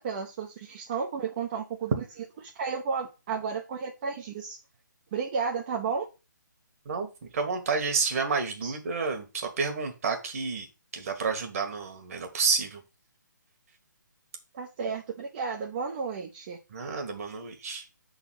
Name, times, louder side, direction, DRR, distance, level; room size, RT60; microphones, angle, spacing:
voice 1, 0.0-1.9 2.4-4.6 5.1-6.1 8.6-8.8 14.5-16.6, right 5 dB, 30° right, 0.7 m, -32 dB
voice 2, 7.3-10.7 10.9-12.8 16.7-17.8, right 5 dB, 50° right, 1.6 m, -30 dB
5.8 x 4.0 x 5.8 m
figure-of-eight pair, 150°, 10 cm